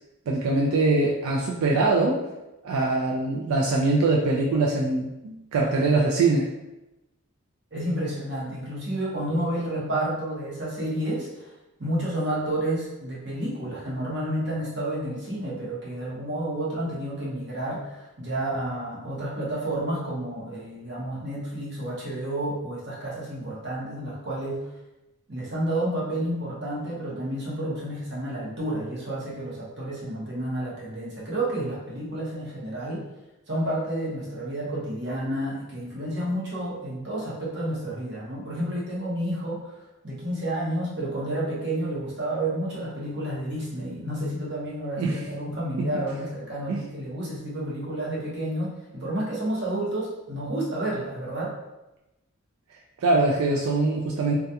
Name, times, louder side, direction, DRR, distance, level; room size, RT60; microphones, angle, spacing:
voice 1, 0.3-2.2 2.6-6.5 45.0-45.2 45.8-45.9 46.7-46.8 53.0-54.3, right 3 dB, 85° right, -2 dB, 0.3 m, -23 dB
voice 2, 7.7-11.5 11.8-24.6 25.3-33.0 33.5-39.8 40.0-51.5, right 1 dB, 55° right, -6 dB, 0.8 m, -30 dB
2.3 x 2.2 x 2.7 m, 0.98 s
head